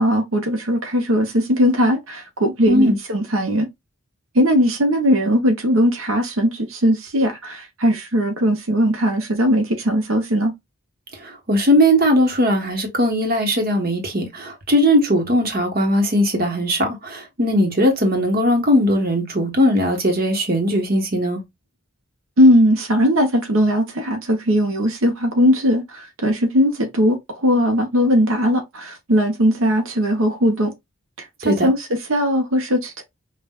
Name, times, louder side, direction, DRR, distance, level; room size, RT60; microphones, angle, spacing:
voice 1, 0.0-3.7 4.3-10.5 22.4-30.7 31.2-33.0, equal, 75° right, 0.9 m, -19 dB
voice 2, 11.2-21.4 31.4-31.7, equal, 45° right, 1.1 m, -19 dB
5.5 x 2.4 x 2.3 m
head